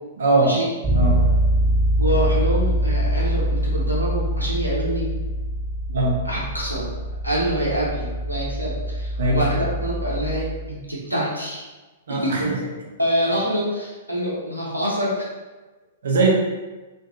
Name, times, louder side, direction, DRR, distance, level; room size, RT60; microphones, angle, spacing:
voice 1, 0.2-0.6 0.9-1.3 5.9-6.2 9.2-9.6 12.1-12.6 16.0-16.3, right 2 dB, 60° right, -1 dB, 0.6 m, -21 dB
Bass guitar, 0.8-10.7, right 1 dB, 15° right, 0.7 m, -24 dB
voice 2, 2.0-5.1 6.2-6.9 7.2-11.6 12.1-12.5 13.0-15.3, equal, 90° right, -6 dB, 0.8 m, -26 dB
2.7 x 2.6 x 2.3 m, 1.2 s
figure-of-eight pair, 105°, 0 cm